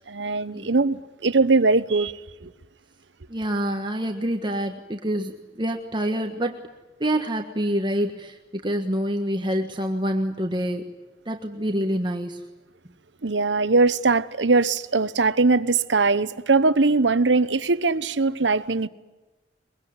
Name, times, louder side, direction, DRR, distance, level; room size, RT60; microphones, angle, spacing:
voice 1, 0.1-2.1 2.4-2.5 13.2-18.9, right 3 dB, 90° right, 1.0 m, -21 dB
voice 2, 3.3-6.6 7.0-10.9 11.2-12.4, equal, 25° right, 1.5 m, -27 dB
23.0 x 22.5 x 9.6 m
head